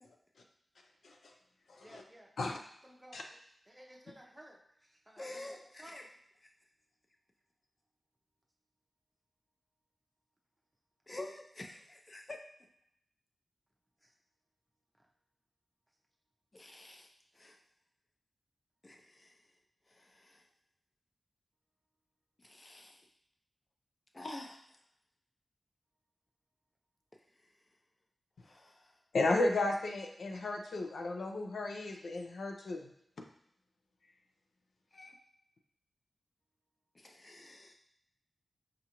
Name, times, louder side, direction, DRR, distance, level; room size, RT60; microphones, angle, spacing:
voice 1, 0.0-0.4 1.0-1.3 1.7-2.0 2.4-2.6 3.1-3.2 29.1-32.9, left 2 dB, 85° left, 3 dB, 0.4 m, -34 dB
voice 2, 1.8-3.2 3.7-5.4 5.8-6.1 14.0-14.1 14.9-15.1 18.9-19.0 32.0-32.1, right 1 dB, 15° right, -1 dB, 0.6 m, -56 dB
voice 3, 5.2-6.0 11.1-12.4 16.5-17.1 17.3-17.6 18.8-19.4 19.9-20.4 22.4-23.0 24.1-24.8 28.4-29.0 34.9-35.1 36.9-37.7, left 2 dB, 35° left, 2 dB, 0.5 m, -48 dB
5.0 x 2.4 x 2.9 m, 0.74 s
wide cardioid pair, 95°, 0 cm